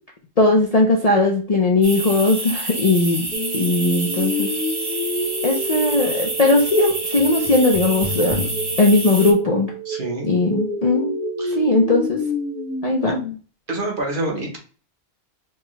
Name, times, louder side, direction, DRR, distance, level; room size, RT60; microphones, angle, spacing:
voice 1, 0.4-3.3 3.5-4.5 5.4-8.4 8.8-9.7 10.3-11.1 11.6-12.2 12.8-13.2, left 2 dB, 45° left, 0 dB, 0.5 m, -18 dB
sound 1, 1.8-9.3, right 2 dB, 25° right, 0.7 m, -28 dB
sound 2, 3.3-13.3, equal, 60° left, 1.2 m, -29 dB
voice 2, 9.8-10.3 11.4-11.6 13.1-13.2 13.7-14.6, right 2 dB, 45° right, 0 dB, 1.1 m, -27 dB
4.4 x 2.3 x 3.0 m, 0.39 s
omnidirectional pair, 1.3 m